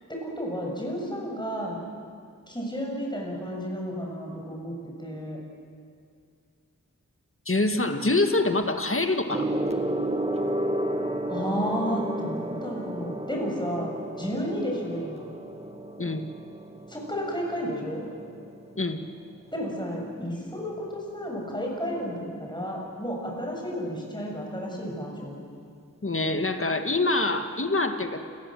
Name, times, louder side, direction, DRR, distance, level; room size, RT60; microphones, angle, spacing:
voice 1, 0.1-1.8 2.5-5.4 11.3-15.3 16.9-18.0 19.5-25.4, equal, 15° left, -2 dB, 7.3 m, -32 dB
voice 2, 7.5-9.5 16.0-16.3 18.8-19.0 26.0-28.2, left 2 dB, 40° left, 6 dB, 1.8 m, -25 dB
Gong, 9.3-19.1 20.0-20.3, right 1 dB, 20° right, 1.9 m, -32 dB
28.0 x 19.0 x 7.7 m, 2.3 s
wide cardioid pair, 60°, 33 cm